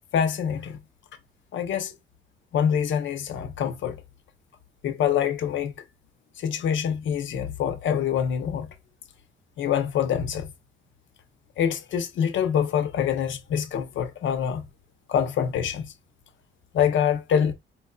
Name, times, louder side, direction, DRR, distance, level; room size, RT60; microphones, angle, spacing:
voice 1, 0.1-0.8 1.5-1.9 2.5-4.0 4.8-5.7 6.4-8.7 9.6-10.5 11.6-14.6 15.1-15.9 16.7-17.5, left 8 dB, 70° left, 0.7 m, -25 dB
4.5 x 2.6 x 2.2 m
cardioid pair, 90°, 20 cm